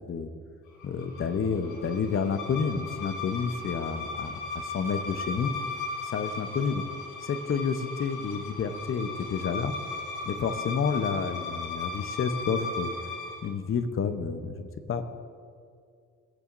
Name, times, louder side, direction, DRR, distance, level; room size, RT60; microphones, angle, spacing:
sound 1, 0.8-13.5, left 3 dB, 75° left, 1.7 m, -37 dB
voice 1, 0.8-5.5 6.0-6.8 7.2-9.7 10.2-12.9 13.4-15.0, left 6 dB, 45° left, 9 dB, 0.8 m, -30 dB
20.0 x 7.0 x 2.6 m, 2.3 s
cardioid pair, 90°, 30 cm